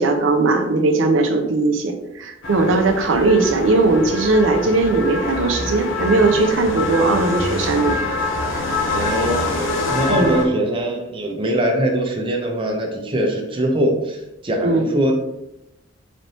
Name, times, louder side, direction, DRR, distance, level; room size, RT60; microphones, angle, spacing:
voice 1, 0.0-8.0 8.5-8.7 10.1-10.4 14.6-14.9, right 3 dB, 85° right, 4 dB, 0.5 m, -18 dB
sound 1, 2.4-10.5, left 3 dB, 85° left, 0.7 m, -25 dB
voice 2, 8.9-15.1, right 1 dB, 25° right, 1 dB, 0.7 m, -22 dB
4.0 x 3.3 x 2.7 m, 0.89 s
head